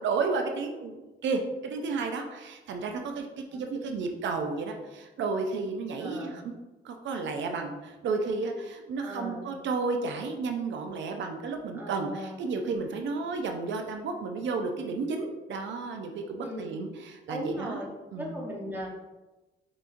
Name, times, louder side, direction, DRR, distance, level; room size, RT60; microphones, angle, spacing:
voice 1, 0.0-3.3 3.5-6.4 6.8-17.8 18.1-18.3, right 4 dB, 70° right, 4 dB, 0.5 m, -32 dB
voice 2, 6.0-6.4 9.0-9.5 11.7-12.5 16.4-16.8 17.3-17.9 18.2-18.9, equal, 10° right, -2 dB, 1.0 m, -38 dB
5.5 x 3.0 x 2.5 m, 1.1 s
cardioid pair, 90°, 20 cm